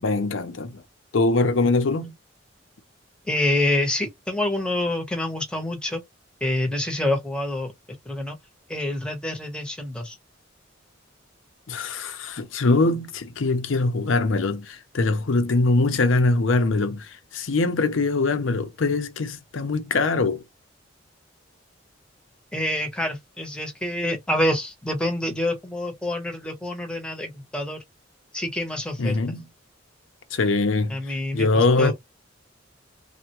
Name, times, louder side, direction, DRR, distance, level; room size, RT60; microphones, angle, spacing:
voice 1, 0.0-0.7 1.1-2.1 11.7-17.0 17.3-20.4 29.0-29.4 30.3-31.0 31.3-31.9, left 3 dB, 90° left, 0.6 m, -22 dB
voice 2, 3.3-6.0 6.4-7.7 8.0-8.4 8.7-10.2 22.5-27.8 28.3-29.2 30.9-31.9, left 1 dB, 5° left, 0.9 m, -27 dB
3.4 x 2.2 x 2.9 m
head